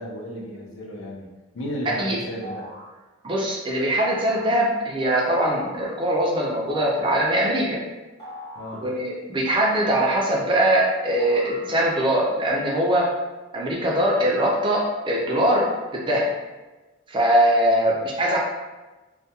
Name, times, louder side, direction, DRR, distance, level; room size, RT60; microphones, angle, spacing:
voice 1, 0.0-2.7 8.5-8.8 17.7-17.9, equal, 70° left, -3 dB, 0.6 m, -34 dB
sound 1, 2.4-3.0 4.0-4.5 5.4-6.0 6.7-7.3 8.2-8.9 9.5-10.5 11.2-12.0, right 1 dB, 20° left, 0.7 m, -40 dB
voice 2, 3.2-7.8 8.8-13.1 13.5-16.3 17.1-18.4, right 1 dB, 25° right, -3 dB, 0.3 m, -22 dB
2.3 x 2.2 x 2.7 m, 1.2 s
head